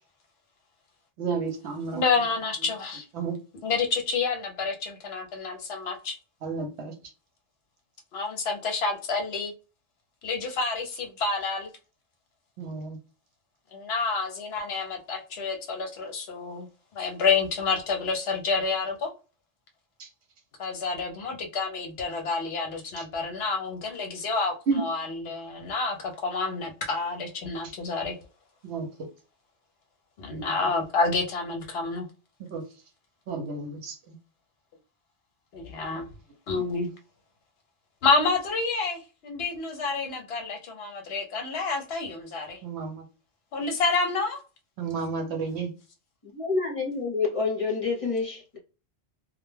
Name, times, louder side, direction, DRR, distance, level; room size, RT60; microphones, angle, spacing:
voice 1, 1.2-2.0 3.2-3.3 6.4-6.9 12.6-13.0 20.0-20.1 23.0-23.1 24.7-24.8 28.6-28.9 32.5-32.6 33.3-34.1 36.5-36.6 42.6-43.0 44.8-45.7, right 4 dB, 70° right, 0.9 m, -31 dB
voice 2, 1.9-3.1 3.6-6.1 8.1-9.5 10.2-11.7 13.7-16.7 16.9-19.1 20.6-28.2 30.2-32.1 35.5-36.1 36.5-36.9 38.0-42.6 43.5-44.4, left 4 dB, 65° left, 0.8 m, -28 dB
voice 3, 46.2-48.6, left 4 dB, 35° left, 0.7 m, -28 dB
2.2 x 2.1 x 3.1 m
omnidirectional pair, 1.2 m